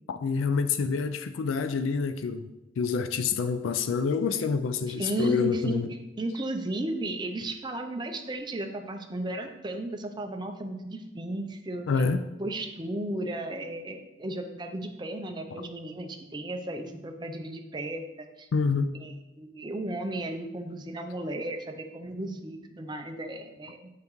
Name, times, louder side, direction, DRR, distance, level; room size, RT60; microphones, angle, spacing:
voice 1, 0.1-2.4 2.8-5.9 11.9-12.2 18.5-18.9, left 5 dB, 80° left, 10 dB, 0.4 m, -27 dB
voice 2, 4.9-12.0 12.4-18.5 19.0-23.9, right 1 dB, 20° right, 5 dB, 0.5 m, -34 dB
7.5 x 5.6 x 3.1 m, 1.0 s
head